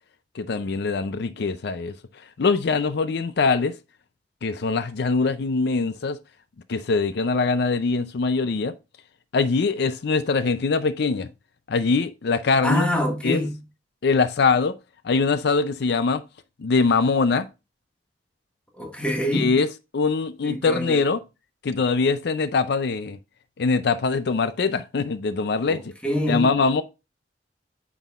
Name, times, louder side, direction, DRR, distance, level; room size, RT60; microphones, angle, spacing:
voice 1, 0.3-1.9 2.4-3.7 4.4-6.2 6.7-8.7 9.3-11.3 11.7-12.9 13.2-13.4 14.0-14.7 15.0-16.2 16.6-17.5 19.3-19.7 19.9-21.2 21.6-23.2 23.6-25.9 26.3-26.8, left 4 dB, 65° left, 0.5 m, -22 dB
voice 2, 12.6-13.6 18.8-19.6 20.4-21.0 25.7-26.5, equal, 5° left, 1.3 m, -25 dB
9.0 x 6.1 x 2.4 m
head